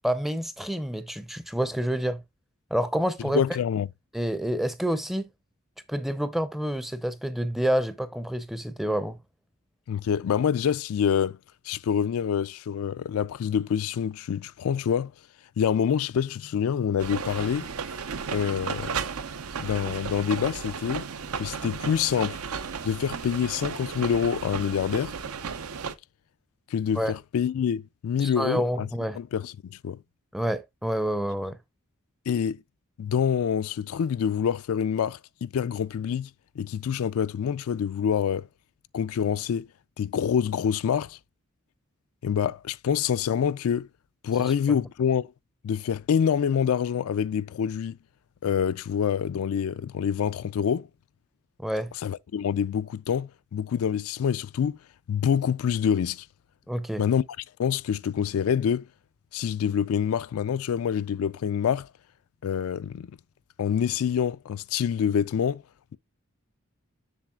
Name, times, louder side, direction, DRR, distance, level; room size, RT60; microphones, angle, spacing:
voice 1, 0.0-2.2 2.7-3.4 4.1-5.3 5.9-9.2 27.0-27.1 28.2-29.2 30.3-31.6 44.4-44.5 51.6-51.9 56.7-57.0, equal, ahead, 0.5 m, -28 dB
voice 2, 3.3-3.9 9.9-11.4 11.7-15.1 15.6-17.7 18.3-19.0 19.6-21.1 21.4-22.4 22.8-25.1 26.7-28.9 29.1-30.0 32.3-32.6 33.0-36.3 36.6-38.5 38.9-39.7 40.0-41.2 42.2-43.9 44.2-45.3 45.6-48.0 48.4-50.9 52.0-54.8 55.1-56.3 57.0-57.2 57.6-58.9 59.3-61.9 62.4-63.1 63.6-65.6, left 8 dB, 75° left, 0.3 m, -26 dB
sound 1, 17.0-25.9, right 6 dB, 80° right, 0.7 m, -34 dB
7.3 x 6.8 x 2.3 m
head